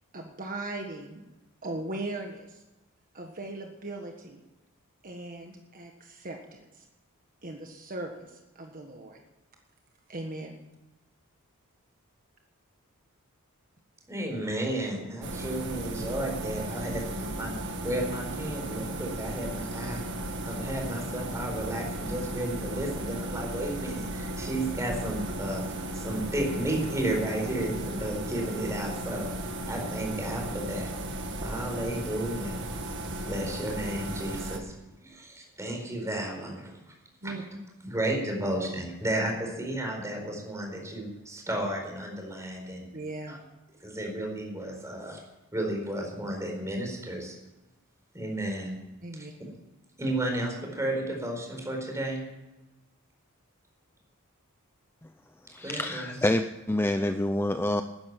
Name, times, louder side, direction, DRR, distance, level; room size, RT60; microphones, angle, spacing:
voice 1, 0.1-1.2 1.6-2.6 3.1-4.4 5.0-6.9 7.4-9.2 10.1-10.5 37.2-37.4 42.9-43.4 49.0-49.3, right 2 dB, 40° right, 3 dB, 1.5 m, -38 dB
voice 2, 14.1-17.5 17.8-20.0 20.5-29.3 29.7-30.9 31.4-32.6 33.2-34.7 35.0-36.8 37.2-37.3 37.8-42.9 43.3-43.4 43.8-45.2 45.5-47.3 48.1-48.7 49.2-49.3 50.0-52.2 55.6-56.1, right 1 dB, 15° right, 1 dB, 4.4 m, -33 dB
sound 1, 15.2-34.6, right 1 dB, 55° right, 1.9 m, -35 dB
voice 3, 55.5-57.8, left 1 dB, 10° left, 8 dB, 0.5 m, -27 dB
13.0 x 10.5 x 9.0 m, 1.0 s
head